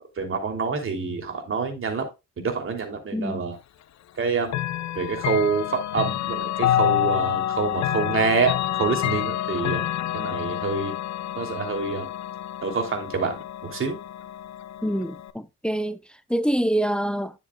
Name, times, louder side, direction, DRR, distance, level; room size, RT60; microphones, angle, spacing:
voice 1, 0.2-2.0 2.4-3.6 4.2-4.5 4.9-9.9 10.1-10.9 11.3-12.1 12.6-14.0, right 4 dB, 45° right, 2.9 m, -27 dB
voice 2, 3.1-3.4 14.8-16.0 16.3-17.3, right 1 dB, 5° left, 0.7 m, -25 dB
Chime / Clock, 4.5-15.3, left 12 dB, 65° left, 0.8 m, -28 dB
10.0 x 7.2 x 2.3 m
cardioid pair, 90°, 30 cm